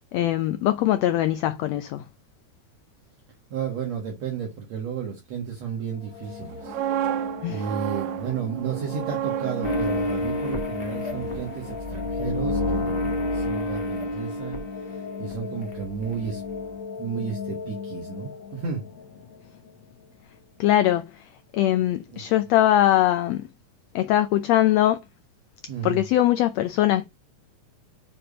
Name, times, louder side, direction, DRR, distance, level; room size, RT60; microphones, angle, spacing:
voice 1, 0.1-2.0 7.4-7.6 20.6-21.0 21.5-23.5 23.9-25.0 25.8-27.1, left 13 dB, 80° left, 1.5 m, -21 dB
voice 2, 3.5-6.8 7.5-16.4 17.0-18.8 22.1-22.3 25.7-26.0, right 7 dB, 60° right, 2.4 m, -33 dB
sound 1, 5.7-20.6, left 6 dB, 60° left, 2.6 m, -38 dB
sound 2, 6.4-12.3 12.6-12.9, right 11 dB, 75° right, 1.9 m, -32 dB
sound 3, 9.6-15.3 15.6-16.8, left 1 dB, 30° left, 1.1 m, -30 dB
6.8 x 4.4 x 5.1 m
omnidirectional pair, 3.7 m